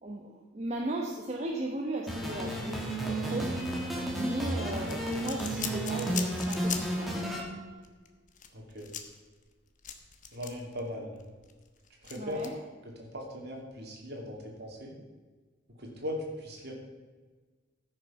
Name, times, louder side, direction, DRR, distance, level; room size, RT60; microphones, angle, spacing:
voice 1, 0.0-3.5 4.1-7.1 12.2-12.5, right 2 dB, 35° right, 0 dB, 1.0 m, -36 dB
sound 1, 2.1-7.4, right 1 dB, ahead, 2.0 m, -32 dB
sound 2, 4.8-7.1 7.3-7.5 7.8-10.8 11.2-12.5, left 8 dB, 40° left, 1.0 m, -40 dB
voice 2, 8.5-8.9 10.3-11.2 12.0-12.4 13.0-14.9 15.8-16.7, left 1 dB, 55° right, -1 dB, 2.7 m, -39 dB
14.0 x 6.4 x 5.8 m, 1.4 s
head